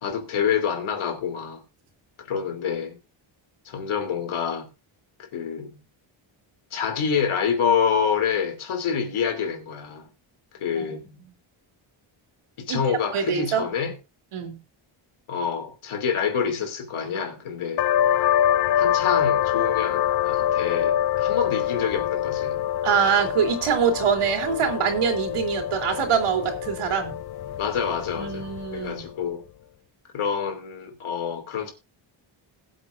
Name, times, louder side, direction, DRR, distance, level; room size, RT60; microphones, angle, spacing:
voice 1, 0.0-1.6 2.2-3.0 3.6-4.7 5.3-5.8 6.7-10.1 10.5-11.2 12.6-14.0 15.3-17.8 18.8-22.6 27.6-29.4 30.1-31.7, left 7 dB, 75° left, 3.0 m, -27 dB
voice 2, 13.1-13.7 14.3-14.6 22.8-27.2 28.2-29.0, right 7 dB, 85° right, 3.5 m, -24 dB
sound 1, 17.8-29.1, left 11 dB, 50° left, 0.5 m, -25 dB
20.5 x 8.1 x 2.6 m
cardioid pair, 115°, 49 cm